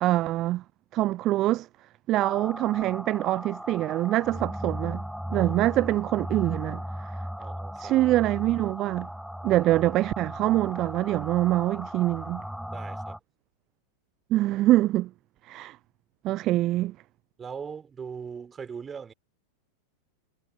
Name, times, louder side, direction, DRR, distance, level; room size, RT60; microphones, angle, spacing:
voice 1, 0.0-0.6 0.9-1.7 2.1-5.0 5.3-7.1 7.8-9.1 9.4-12.4 14.3-15.1 15.4-15.8 16.2-17.0, right 15 dB, 35° right, 0.4 m, -24 dB
sound 1, 2.2-13.2, equal, ahead, 1.6 m, -37 dB
voice 2, 7.4-8.0 12.7-13.2 17.4-19.1, right 6 dB, 20° right, 4.1 m, -40 dB
figure-of-eight pair, 90°, 0 cm